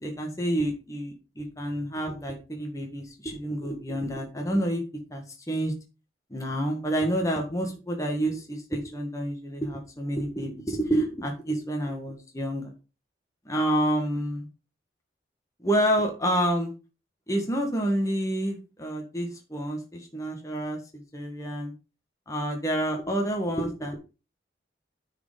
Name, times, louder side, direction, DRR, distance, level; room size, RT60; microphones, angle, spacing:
voice 1, 0.0-4.8 5.1-5.7 6.3-12.7 13.5-14.5 15.6-16.7 17.3-21.7 22.3-23.9, right 1 dB, 20° left, 2 dB, 1.8 m, -28 dB
9.3 x 5.1 x 5.1 m, 0.31 s
head